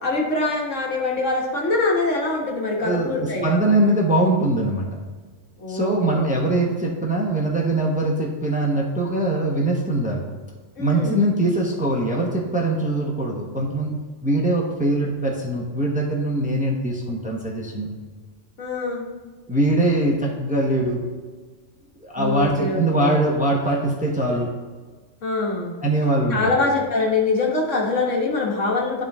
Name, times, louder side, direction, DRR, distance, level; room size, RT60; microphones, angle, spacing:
voice 1, 0.0-3.6 5.6-6.2 10.8-11.2 18.6-19.0 22.2-23.2 25.2-25.7 26.3-29.0, left 3 dB, 75° left, -1 dB, 1.7 m, -24 dB
voice 2, 2.8-4.8 5.7-10.2 10.8-17.9 19.5-21.0 22.0-24.5 25.8-26.5, right 1 dB, 5° right, -1 dB, 0.8 m, -22 dB
11.5 x 3.8 x 3.5 m, 1.4 s
omnidirectional pair, 1.3 m